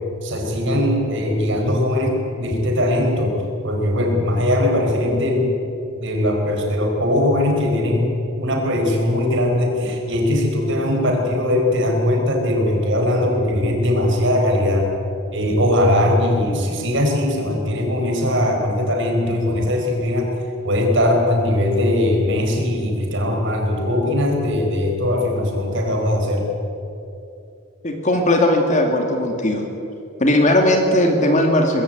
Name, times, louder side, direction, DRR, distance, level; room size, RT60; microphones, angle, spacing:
voice 1, 0.2-3.3 3.6-5.5 6.0-14.9 15.3-20.3 20.6-26.5, left 1 dB, 55° right, 2 dB, 4.6 m, -20 dB
voice 2, 27.8-29.6 30.2-31.8, left 1 dB, 35° left, 3 dB, 2.3 m, -17 dB
21.0 x 15.5 x 9.4 m, 2.8 s
head